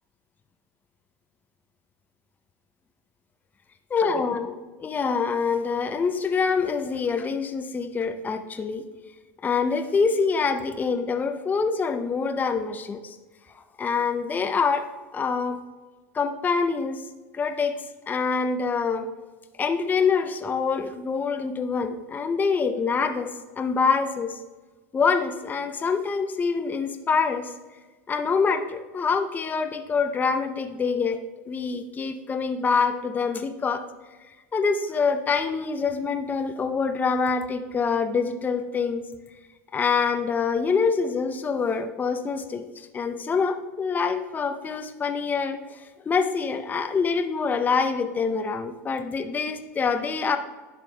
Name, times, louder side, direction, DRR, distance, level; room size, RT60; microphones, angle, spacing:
voice 1, 3.9-8.8 9.4-13.2 13.8-15.6 16.1-17.0 17.3-17.8 18.1-19.1 19.6-23.3 23.6-24.4 24.9-27.5 28.1-31.2 31.5-33.8 34.5-39.0 39.7-50.4, left 5 dB, 20° left, 7 dB, 0.6 m, -25 dB
11.0 x 6.0 x 2.2 m, 1.3 s
hypercardioid pair, 100°, 8 cm